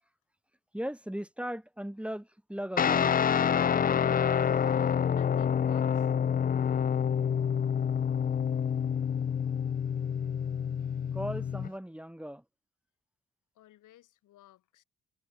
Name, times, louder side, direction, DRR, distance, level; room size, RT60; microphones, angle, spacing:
voice 1, 0.7-3.2 11.1-12.4, equal, 5° right, 3.5 m, -38 dB
Guitar, 2.8-11.7, left 8 dB, 30° left, 0.5 m, -27 dB
voice 2, 4.7-6.1 9.9-10.1 13.6-14.8, left 14 dB, 85° left, 5.2 m, -58 dB
cardioid pair, 90°, 30 cm